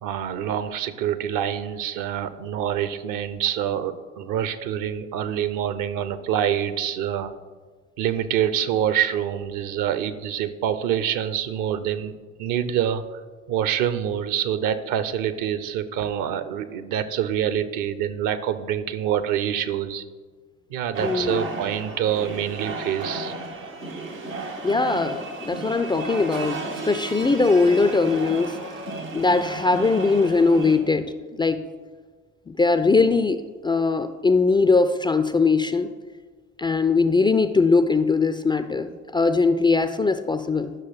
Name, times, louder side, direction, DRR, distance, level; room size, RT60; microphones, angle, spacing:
voice 1, 0.0-7.3 8.0-12.1 12.4-13.0 13.5-20.0 20.7-23.3, right 10 dB, 55° right, 13 dB, 0.8 m, -26 dB
sound 1, 20.9-30.8, right 3 dB, 85° right, 1.4 m, -34 dB
voice 2, 21.0-21.5 24.6-28.6 29.1-31.6 32.5-35.9 36.6-40.7, left 4 dB, 10° left, 10 dB, 0.4 m, -21 dB
10.5 x 6.3 x 5.7 m, 1.4 s
figure-of-eight pair, 50°, 39 cm